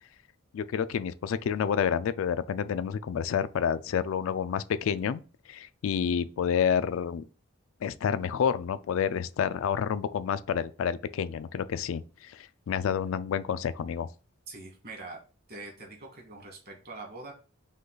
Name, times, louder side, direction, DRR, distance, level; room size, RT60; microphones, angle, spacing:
voice 1, 0.5-5.2 5.5-7.2 7.8-14.1, left 7 dB, 70° left, 0.3 m, -29 dB
voice 2, 14.5-15.2 15.5-17.3, right 3 dB, 50° right, 1.6 m, -43 dB
5.2 x 2.3 x 3.9 m
head